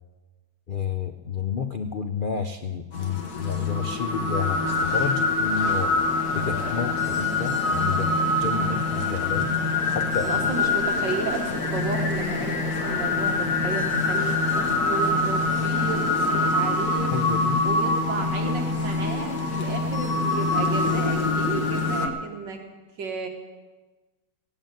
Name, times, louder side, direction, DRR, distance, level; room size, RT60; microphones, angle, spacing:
voice 1, 0.7-5.9 6.3-8.1 8.4-9.5 9.9-10.3 17.1-17.6, left 7 dB, 90° left, 6 dB, 0.4 m, -30 dB
sound 1, 2.9-22.1, left 3 dB, 60° left, 1.9 m, -25 dB
sound 2, 4.4-16.5, equal, 5° right, 5.2 m, -40 dB
voice 2, 10.2-17.3 17.6-22.6 23.0-23.3, right 5 dB, 75° right, 3 dB, 2.0 m, -33 dB
16.5 x 8.9 x 9.0 m, 1.2 s
omnidirectional pair, 2.0 m